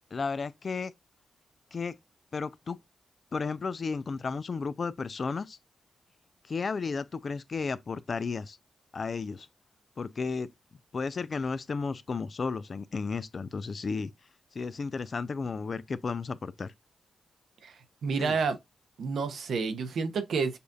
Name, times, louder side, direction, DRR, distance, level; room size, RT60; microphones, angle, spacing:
voice 1, 0.1-0.9 1.7-2.0 2.3-2.8 3.3-5.6 6.5-8.6 8.9-9.5 10.0-10.5 10.9-14.1 14.5-16.7 18.2-18.4, left 4 dB, 55° left, 0.4 m, -33 dB
voice 2, 18.0-18.6 19.0-20.6, right 5 dB, 75° right, 0.8 m, -29 dB
6.7 x 2.6 x 2.4 m
supercardioid pair, 45°, 0 cm